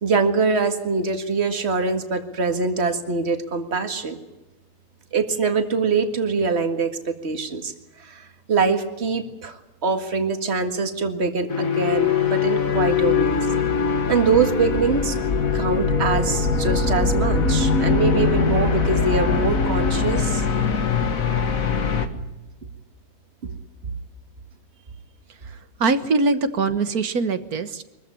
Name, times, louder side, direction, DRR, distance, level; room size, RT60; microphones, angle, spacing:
voice 1, 0.0-4.2 5.1-7.7 8.0-13.5 14.1-15.2 15.5-20.4 23.4-23.5, right 4 dB, 40° right, 7 dB, 2.2 m, -23 dB
sound 1, 11.5-22.1, left 5 dB, 55° left, 2.0 m, -22 dB
voice 2, 25.8-27.8, right 3 dB, 65° right, 11 dB, 1.8 m, -22 dB
24.0 x 15.0 x 9.7 m, 1.0 s
omnidirectional pair, 1.7 m